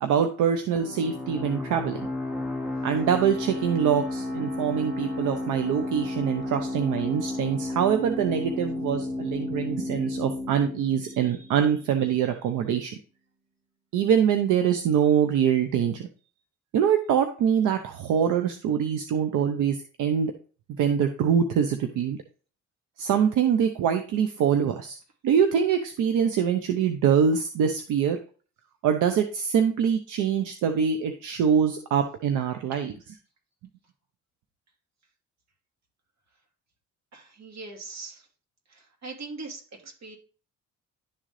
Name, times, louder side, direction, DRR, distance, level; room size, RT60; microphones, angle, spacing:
voice 1, 0.0-2.0 2.8-13.0 13.9-16.0 16.7-20.3 20.8-22.2 23.0-25.0 25.2-28.2 28.8-32.9, right 8 dB, 85° right, 7 dB, 0.8 m, -24 dB
sound 1, 0.8-12.1, left 2 dB, 5° right, 1.2 m, -33 dB
voice 2, 37.1-38.3 38.7-40.2, right 3 dB, 60° right, 1 dB, 2.6 m, -41 dB
11.0 x 3.8 x 3.2 m, 0.38 s
cardioid pair, 90°, 30 cm